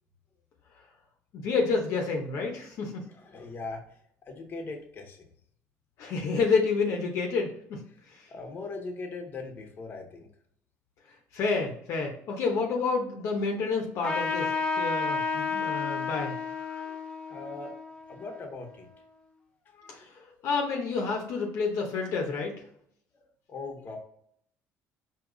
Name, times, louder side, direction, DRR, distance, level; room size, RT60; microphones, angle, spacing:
voice 1, 1.3-3.0 6.0-8.3 11.3-16.4 19.9-22.5, left 4 dB, 65° left, 1 dB, 0.9 m, -29 dB
voice 2, 3.1-3.8 4.3-5.3 8.3-10.3 16.5-17.0 17.3-17.8 18.1-18.9 19.7-20.5 23.1-24.0, left 3 dB, 40° left, 3 dB, 1.1 m, -41 dB
Trumpet, 14.0-19.0, left 4 dB, 20° left, 0.9 m, -32 dB
4.8 x 2.9 x 3.8 m, 0.66 s
cardioid pair, 115°, 5 cm